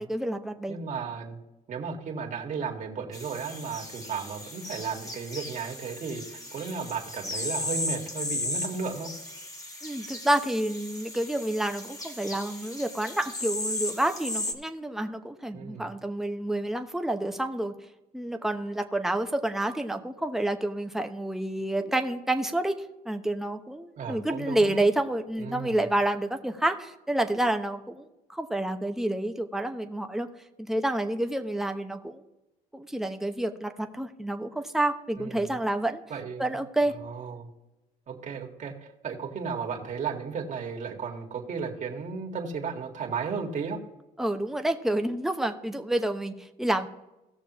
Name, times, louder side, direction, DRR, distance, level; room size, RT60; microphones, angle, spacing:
voice 1, 0.0-0.8 9.8-17.7 18.1-22.8 23.0-30.3 30.6-32.2 32.7-36.0 36.4-36.9 44.2-46.9, right 1 dB, ahead, 5 dB, 0.9 m, -29 dB
voice 2, 0.7-1.4 1.7-9.1 15.5-15.9 24.0-24.8 25.4-25.8 35.2-35.5 36.1-36.6 37.0-37.5 38.1-43.8, right 5 dB, 45° right, 0 dB, 2.0 m, -34 dB
sound 1, 3.1-14.5, left 1 dB, 20° left, 1.6 m, -36 dB
17.0 x 6.8 x 3.1 m, 0.97 s
cardioid pair, 110°, 17 cm